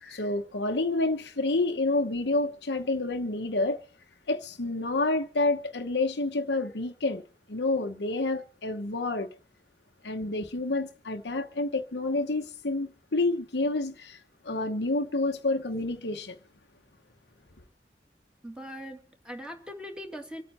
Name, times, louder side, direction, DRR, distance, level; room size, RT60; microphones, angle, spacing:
voice 1, 0.0-3.8 4.3-7.2 7.5-9.3 10.0-14.2 14.4-16.4, left 2 dB, 70° left, 1.1 m, -29 dB
voice 2, 18.4-20.4, equal, 5° right, 2.6 m, -41 dB
26.5 x 9.0 x 4.3 m
head